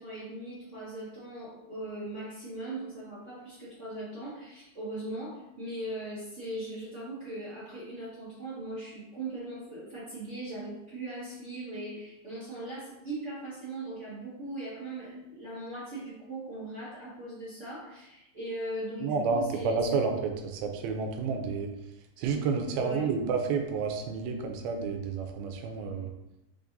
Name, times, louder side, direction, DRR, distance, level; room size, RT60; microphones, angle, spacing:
voice 1, 0.0-19.8 22.7-23.1, right 1 dB, 45° right, -11 dB, 0.9 m, -39 dB
voice 2, 19.0-21.7 22.2-26.1, right 5 dB, 85° right, 4 dB, 2.4 m, -30 dB
5.7 x 3.5 x 2.6 m, 0.89 s
omnidirectional pair, 4.2 m